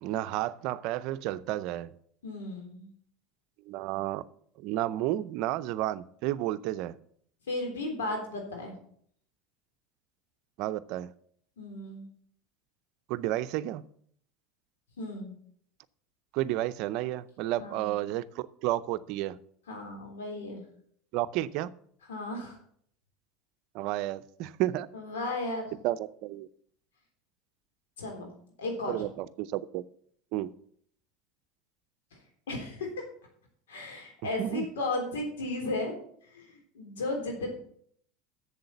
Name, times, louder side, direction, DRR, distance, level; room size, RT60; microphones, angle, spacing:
voice 1, 0.0-1.9 3.7-4.2 4.6-7.0 10.6-11.1 13.1-13.8 16.3-19.4 21.1-21.7 23.7-24.9 25.8-26.0 26.2-26.5 28.9-29.8 30.3-30.5 34.4-34.6, right 15 dB, 65° right, 14 dB, 0.5 m, -31 dB
voice 2, 2.2-2.9 7.5-8.7 11.6-12.1 15.0-15.4 17.6-17.9 19.7-20.6 22.1-22.6 24.9-25.7 28.0-28.3 28.6-29.0 32.5-32.9 33.7-35.9 36.3-37.5, left 2 dB, 85° left, 2 dB, 3.5 m, -35 dB
7.7 x 7.3 x 7.2 m, 0.62 s
hypercardioid pair, 90°, 0 cm